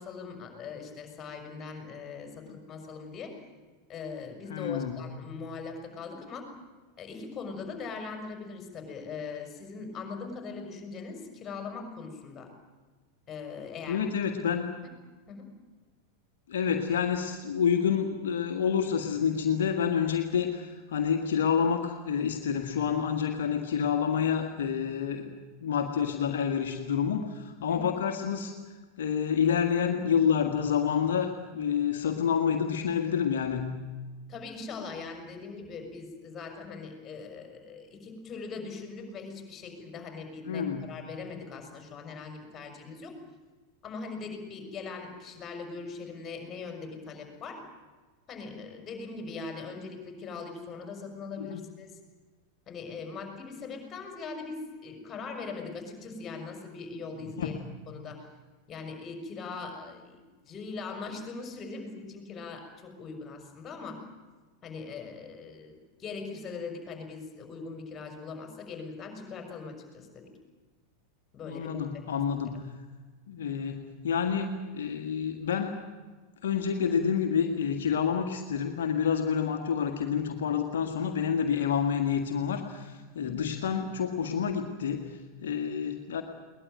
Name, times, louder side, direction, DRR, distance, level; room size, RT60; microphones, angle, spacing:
voice 1, 0.0-3.4 3.9-6.5 7.0-12.5 13.3-14.1 15.3-15.5 27.7-27.9 34.3-43.1 43.8-47.6 48.3-51.9 52.7-57.6 57.9-58.3 58.7-64.0 64.6-70.3 71.3-71.7 83.2-83.4, left 4 dB, 25° left, 4 dB, 5.9 m, -41 dB
voice 2, 4.5-5.0 13.9-14.7 16.5-25.3 25.6-28.5 29.0-33.8 40.4-40.9 51.4-51.6 57.2-57.7 71.5-72.6 73.3-75.7 76.4-86.2, left 7 dB, 60° left, 4 dB, 1.9 m, -28 dB
22.0 x 19.5 x 9.2 m, 1.3 s
figure-of-eight pair, 90°, 0 cm